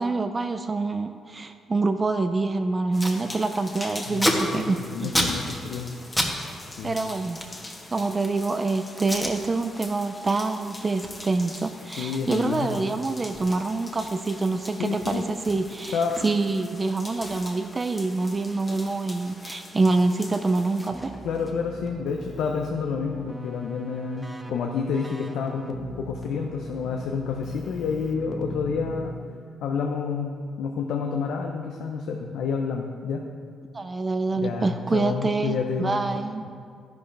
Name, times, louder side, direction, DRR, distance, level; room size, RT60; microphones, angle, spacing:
voice 1, 0.0-5.1 6.8-7.4 7.9-21.1 33.7-36.4, right 3 dB, 30° right, 8 dB, 0.5 m, -26 dB
Packing tape duct tape, 2.4-2.5 2.7-3.2 3.5-6.4 6.6-8.4 9.0-9.4 9.8-10.0 10.4-16.6 16.9-17.0 17.2-19.6 19.8-21.8, equal, 5° left, 1.4 m, -33 dB
sound 1, 2.9-20.9, left 2 dB, 20° left, 1.2 m, -43 dB
voice 2, 4.1-5.9 6.8-7.0 12.0-12.8 14.8-15.3 15.9-16.3 21.2-29.2 29.6-33.2 34.3-36.0 36.4-36.5, left 5 dB, 80° left, 2 dB, 0.7 m, -29 dB
Keyboard (musical), 20.9-29.6, equal, 10° right, 0.9 m, -40 dB
11.5 x 10.5 x 3.4 m, 2.2 s
cardioid pair, 90°, 0 cm